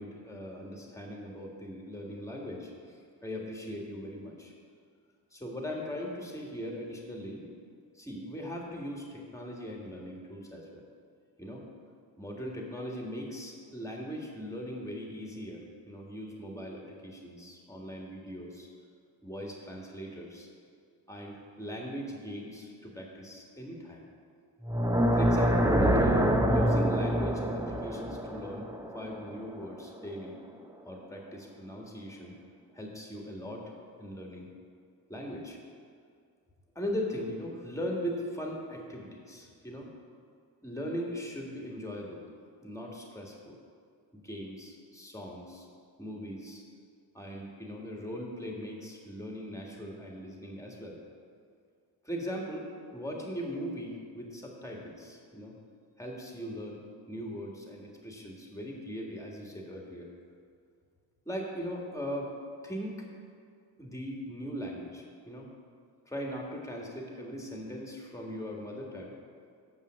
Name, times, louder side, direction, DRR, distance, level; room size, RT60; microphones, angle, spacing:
voice 1, 0.0-4.5 5.3-7.5 7.9-10.8 11.4-11.6 12.2-18.7 19.2-20.5 21.1-24.0 25.1-28.7 28.9-30.4 30.8-32.3 32.7-33.7 34.0-34.5 35.1-35.6 36.7-39.9 40.6-42.2 42.6-43.6 44.1-45.7 46.0-46.6 47.1-51.0 52.0-55.5 56.0-56.8 57.1-60.1 61.2-62.3 62.6-63.1 63.8-65.5 66.0-69.1, equal, 10° left, -1 dB, 1.8 m, -39 dB
sound 1, 24.6-29.8, equal, 10° right, 0.7 m, -26 dB
7.0 x 5.7 x 7.5 m, 2.2 s
cardioid pair, 80°, 41 cm